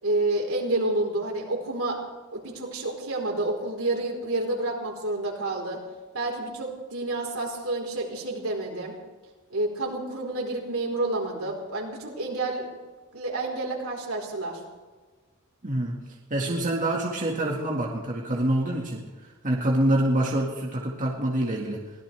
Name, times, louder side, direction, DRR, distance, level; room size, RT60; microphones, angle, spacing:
voice 1, 0.0-2.0 2.3-5.8 6.1-8.9 9.5-12.6 13.1-14.6, right 2 dB, 80° right, -1 dB, 4.3 m, -29 dB
voice 2, 15.6-16.0 16.3-19.0 19.4-21.8, right 1 dB, 40° right, -2 dB, 2.0 m, -26 dB
23.0 x 17.5 x 3.5 m, 1.3 s
head